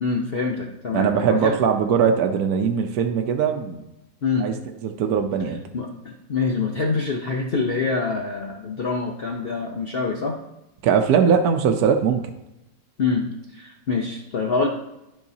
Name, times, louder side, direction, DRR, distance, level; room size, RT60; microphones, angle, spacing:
voice 1, 0.0-1.6 4.2-4.5 5.7-10.4 13.0-13.2 13.5-14.7, left 4 dB, 85° left, 1 dB, 0.5 m, -25 dB
voice 2, 0.9-3.9 4.4-4.5 4.8-5.6 10.8-12.3, right 7 dB, 65° right, 4 dB, 1.0 m, -20 dB
12.0 x 5.6 x 2.7 m, 0.93 s
omnidirectional pair, 2.0 m